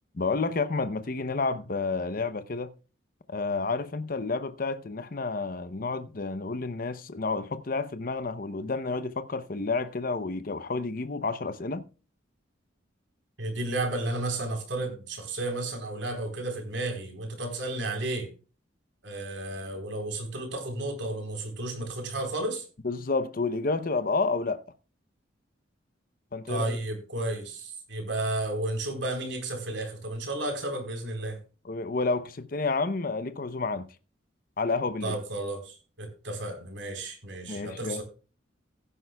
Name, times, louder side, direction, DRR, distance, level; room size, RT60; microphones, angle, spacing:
voice 1, 0.2-2.7 3.3-11.8 22.8-24.6 26.3-26.8 31.7-33.9 34.6-35.2 37.5-38.0, left 3 dB, 45° left, 0.7 m, -30 dB
voice 2, 13.4-18.3 19.0-22.6 26.5-31.4 35.0-38.0, right 2 dB, 65° right, 4.0 m, -32 dB
16.0 x 10.0 x 2.3 m
head